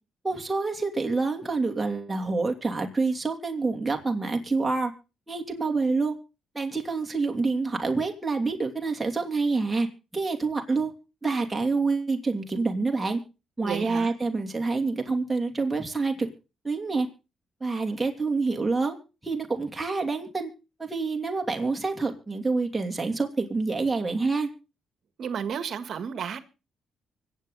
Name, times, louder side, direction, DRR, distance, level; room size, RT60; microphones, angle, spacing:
voice 1, 0.2-4.9 5.3-6.1 6.5-9.9 10.1-10.9 11.2-13.2 13.6-16.3 16.6-17.1 17.6-19.0 19.2-20.5 20.8-24.5, right 3 dB, 15° right, 2.9 m, -27 dB
voice 2, 13.6-14.1 25.2-26.4, right 7 dB, 60° right, 1.6 m, -32 dB
24.5 x 8.3 x 4.0 m
cardioid pair, 90°, 0 cm